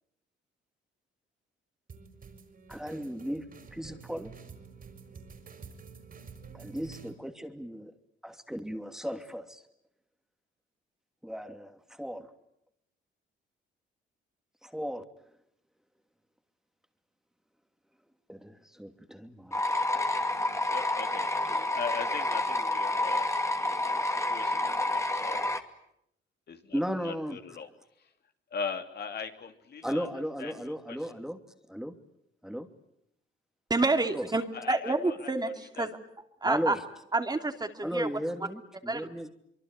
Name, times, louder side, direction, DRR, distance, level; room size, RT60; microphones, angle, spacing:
sound 1, 1.9-7.1, right 5 dB, 45° right, 5.3 m, -49 dB
voice 1, 2.7-3.5 3.7-4.3 6.5-7.9 8.2-9.6 11.2-12.3 14.6-15.0 18.3-19.6 26.7-27.4 29.8-31.4 31.7-31.9 32.4-32.7 34.1-34.3 36.4-36.8 37.8-39.3, equal, ahead, 7 dB, 2.8 m, -35 dB
sound 2, 19.5-25.6, left 2 dB, 15° left, 2.5 m, -29 dB
voice 2, 20.7-23.3 23.6-25.5 26.5-27.7 28.0-28.1 28.5-30.1 30.4-31.0 34.5-35.9, left 6 dB, 55° left, 6 dB, 2.9 m, -40 dB
voice 3, 33.7-34.4 34.7-35.5 35.8-35.9 36.4-36.7 37.1-38.1 38.9-39.1, right 2 dB, 20° right, 6 dB, 2.7 m, -28 dB
25.0 x 24.0 x 9.6 m, 0.77 s
cardioid pair, 90°, 20 cm